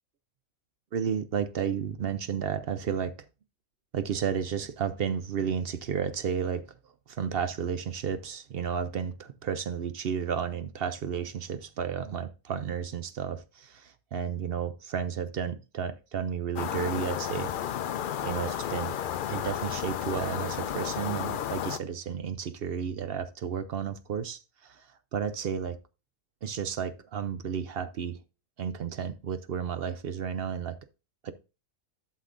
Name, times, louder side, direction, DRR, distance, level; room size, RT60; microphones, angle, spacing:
voice 1, 0.9-3.1 3.9-6.7 7.1-17.5 18.2-19.0 19.3-25.8 26.4-28.2 28.6-30.8 31.2-31.3, right 7 dB, 60° right, 0.7 m, -32 dB
sound 1, 16.6-21.8, left 9 dB, 70° left, 0.4 m, -32 dB
11.5 x 6.5 x 2.5 m
omnidirectional pair, 1.4 m